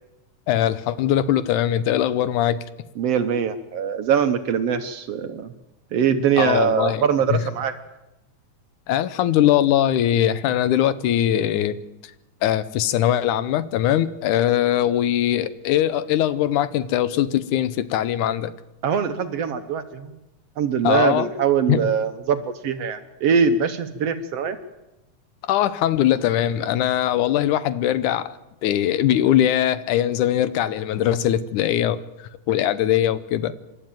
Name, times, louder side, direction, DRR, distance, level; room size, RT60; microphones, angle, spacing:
voice 1, 0.5-2.6 6.4-7.0 8.9-11.8 12.4-18.5 20.8-21.3 21.7-21.9 25.5-28.3 28.6-33.5, left 11 dB, 85° left, 15 dB, 2.4 m, -21 dB
voice 2, 3.0-5.5 5.9-7.8 18.8-20.1 20.6-24.6, right 7 dB, 65° right, 8 dB, 1.8 m, -22 dB
26.5 x 12.5 x 9.0 m, 0.99 s
omnidirectional pair, 3.5 m